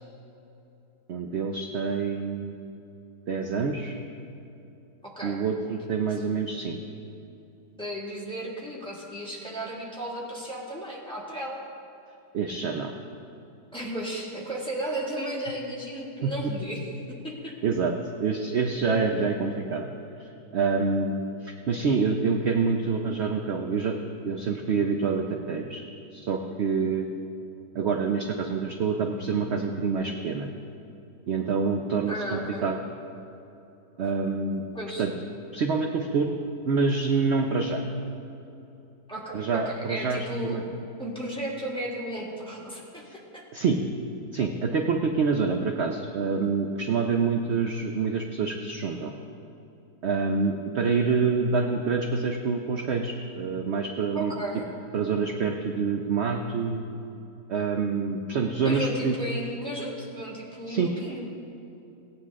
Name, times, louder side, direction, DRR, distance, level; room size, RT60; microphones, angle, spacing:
voice 1, 1.1-2.5 3.3-4.0 5.2-6.8 12.3-12.9 16.2-16.5 17.6-17.9 18.2-19.9 20.2-24.0 24.2-25.8 26.1-27.1 27.7-30.5 31.3-32.8 34.0-34.6 35.0-35.1 35.5-36.3 36.7-37.8 39.3-40.6 43.5-43.8 44.3-49.1 50.0-54.3 54.9-56.8 57.5-59.1 60.7-60.9, right 5 dB, 60° right, 3 dB, 0.7 m, -26 dB
voice 2, 5.0-5.4 7.8-11.6 13.7-16.9 17.2-17.5 32.1-32.7 34.7-35.1 39.1-40.6 41.0-43.0 43.3-43.4 54.1-54.6 58.6-61.2, right 1 dB, 5° left, -6 dB, 1.9 m, -34 dB
17.5 x 9.5 x 3.6 m, 2.9 s
omnidirectional pair, 1.9 m